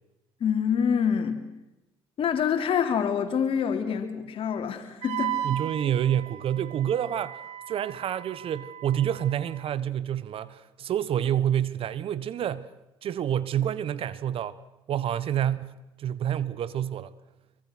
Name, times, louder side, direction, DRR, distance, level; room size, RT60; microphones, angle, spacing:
voice 1, 0.4-1.4 2.2-5.4, left 7 dB, 55° left, 3.2 m, -26 dB
Wind instrument woodwind instrument, 5.0-9.6, right 13 dB, 70° right, 1.5 m, -36 dB
voice 2, 5.4-7.4 7.7-12.7 13.0-14.6 14.9-17.1, right 10 dB, 55° right, 1.3 m, -28 dB
25.5 x 23.5 x 6.3 m
hypercardioid pair, 60°, 11 cm